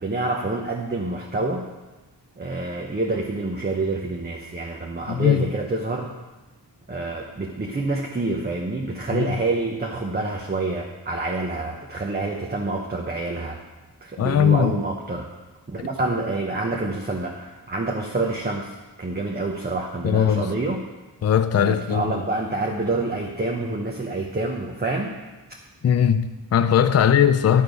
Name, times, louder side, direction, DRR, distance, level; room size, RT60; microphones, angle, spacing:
voice 1, 0.0-1.7 2.4-6.1 6.9-13.6 14.0-15.3 15.7-20.8 21.5-25.1 27.0-27.1, right 2 dB, 25° right, 0.8 m, -27 dB
voice 2, 5.1-5.5 9.1-9.4 14.2-14.7 15.8-15.9 20.0-20.5 21.2-22.2 25.8-27.6, left 8 dB, 40° left, 0.4 m, -19 dB
11.0 x 6.6 x 5.3 m
wide cardioid pair, 170°, 41 cm